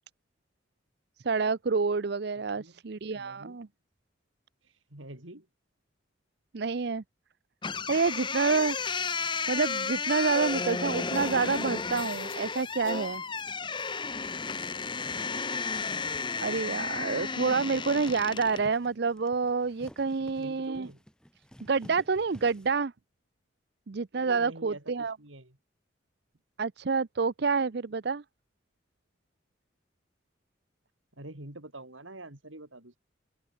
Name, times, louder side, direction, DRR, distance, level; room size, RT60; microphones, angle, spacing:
voice 1, 1.2-3.7 6.5-7.0 7.9-8.8 9.5-13.2 16.4-20.9 21.6-22.9 23.9-25.2 26.6-28.2, right 4 dB, 55° right, 0.6 m, -28 dB
voice 2, 2.3-2.8 3.1-3.7 4.6-5.5 15.0-15.6 20.4-21.0 24.1-25.6 31.1-33.0, right 1 dB, 85° right, 4.6 m, -47 dB
sound 1, 7.6-18.7, left 4 dB, 25° left, 0.9 m, -33 dB
sound 2, 10.7-14.3 14.7-15.4, left 15 dB, 70° left, 2.5 m, -54 dB
sound 3, 14.0-22.7, equal, 5° left, 3.2 m, -54 dB
open air
head